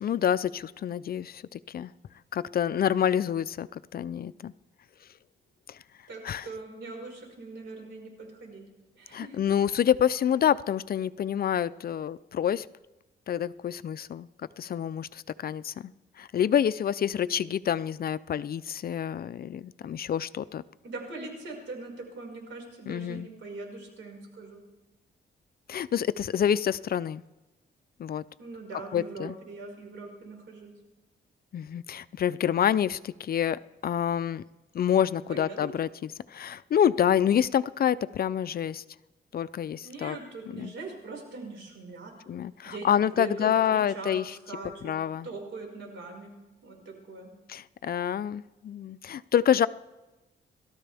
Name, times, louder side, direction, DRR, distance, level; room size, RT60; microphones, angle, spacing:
voice 1, 0.0-1.9 2.3-4.5 5.7-5.8 6.2-6.5 9.1-12.7 13.3-15.9 16.2-20.6 22.9-23.3 25.7-27.2 28.0-28.2 28.9-29.3 31.5-34.4 34.7-38.8 39.3-40.2 40.5-40.7 42.3-44.4 44.8-45.3 47.5-49.7, left 9 dB, 50° left, 15 dB, 0.5 m, -27 dB
voice 2, 6.1-8.6 8.9-9.4 20.8-24.6 28.4-30.7 35.3-35.7 39.8-42.1 42.6-42.9 43.1-44.9 45.2-46.3 46.6-47.3, right 3 dB, 75° right, 1 dB, 5.2 m, -41 dB
29.5 x 13.5 x 3.5 m, 1.0 s
cardioid pair, 115°, 20 cm